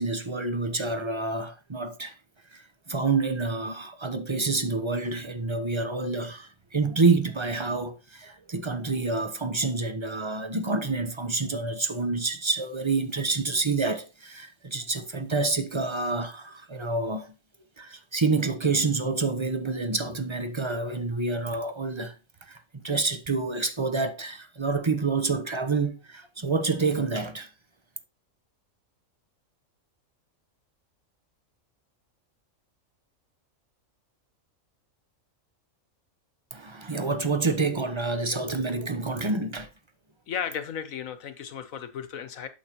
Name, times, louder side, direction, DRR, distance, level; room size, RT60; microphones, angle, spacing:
voice 1, 0.0-2.2 2.5-17.3 17.8-22.2 22.5-27.5 36.5-39.7, right 3 dB, 25° right, 0.7 m, -28 dB
voice 2, 40.3-42.5, left 8 dB, 75° left, 1.4 m, -34 dB
8.6 x 7.3 x 2.9 m
omnidirectional pair, 1.4 m